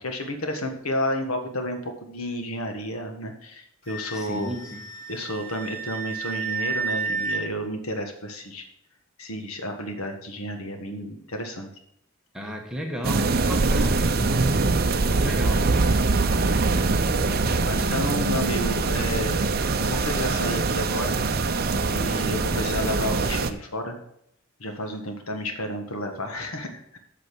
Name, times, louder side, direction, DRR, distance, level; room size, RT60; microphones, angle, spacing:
voice 1, 0.0-4.5 5.1-8.6 9.2-11.7 17.7-19.5 19.8-21.2 21.9-24.0 24.6-27.0, left 1 dB, 80° left, 4 dB, 1.6 m, -31 dB
Wind instrument woodwind instrument, 3.9-7.4, right 5 dB, 40° left, 4.4 m, -31 dB
voice 2, 4.1-4.8 12.3-14.5 15.0-15.9, equal, 5° right, 1 dB, 1.2 m, -33 dB
sound 1, 13.0-23.5, right 3 dB, 45° right, 0.6 m, -23 dB
8.4 x 6.7 x 6.2 m, 0.75 s
head